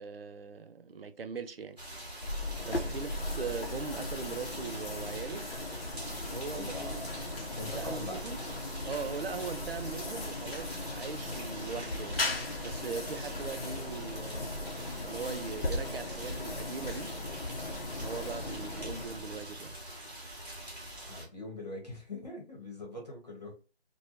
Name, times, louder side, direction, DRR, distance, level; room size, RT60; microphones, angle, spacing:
voice 1, 0.0-1.8 2.6-5.5 6.3-7.0 7.6-8.4 8.8-12.2 12.6-14.6 15.0-17.2 18.0-19.8, right 5 dB, 60° right, 0.4 m, -40 dB
sound 1, 1.8-21.3, right 1 dB, 40° right, 1.1 m, -45 dB
sound 2, 2.2-19.6, left 2 dB, 60° left, 0.7 m, -38 dB
voice 2, 6.5-7.1 7.6-8.2 21.1-23.5, left 2 dB, 40° left, 1.0 m, -42 dB
3.1 x 2.2 x 2.4 m
figure-of-eight pair, 180°, 32 cm